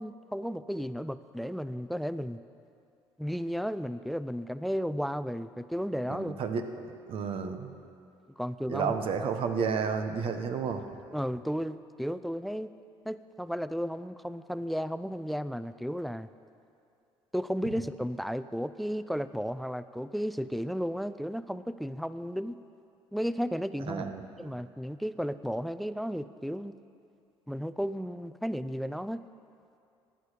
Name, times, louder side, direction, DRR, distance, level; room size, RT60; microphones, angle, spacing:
voice 1, 0.0-2.4 3.2-6.4 8.4-8.9 11.1-12.7 13.1-16.3 17.3-22.6 23.1-24.1 24.4-26.7 27.5-29.2, equal, ahead, 14 dB, 0.4 m, -34 dB
voice 2, 6.1-6.7 7.1-7.7 8.7-10.8 23.9-24.5, right 6 dB, 60° right, 7 dB, 1.0 m, -31 dB
15.0 x 10.0 x 5.0 m, 2.6 s
supercardioid pair, 85°, 11 cm